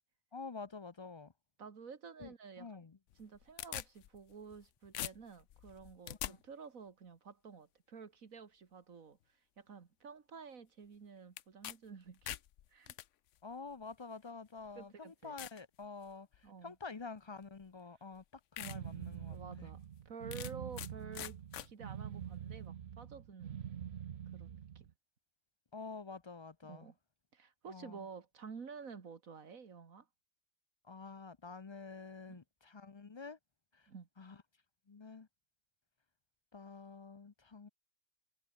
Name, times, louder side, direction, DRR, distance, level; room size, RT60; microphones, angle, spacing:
voice 1, 0.3-1.3 2.2-3.0 6.2-6.4 13.4-19.7 25.7-26.9 27.7-28.1 30.8-33.4 33.7-33.9 34.2-34.4 34.9-35.3 36.5-37.7, left 4 dB, 35° left, 0.5 m, -48 dB
voice 2, 1.6-2.8 3.2-9.2 9.6-12.4 12.7-12.9 14.8-15.3 16.4-16.7 19.3-19.8 20.1-23.6 24.3-24.9 26.7-26.9 27.3-30.1 32.3-32.4 33.9-34.1, right 5 dB, 85° right, 2.2 m, -51 dB
sound 1, 3.1-4.6 4.9-6.3 11.4-11.8 12.1-13.0 13.9-14.0 14.6-14.7 15.4-15.6 16.1-16.5 17.6-17.7 18.1-18.2 18.6-18.8 19.2-19.3 20.3-20.9 21.1-21.7, left 12 dB, 70° left, 1.0 m, -44 dB
sound 2, 18.6-24.9, right 9 dB, 55° right, 1.0 m, -45 dB
omnidirectional pair, 1.4 m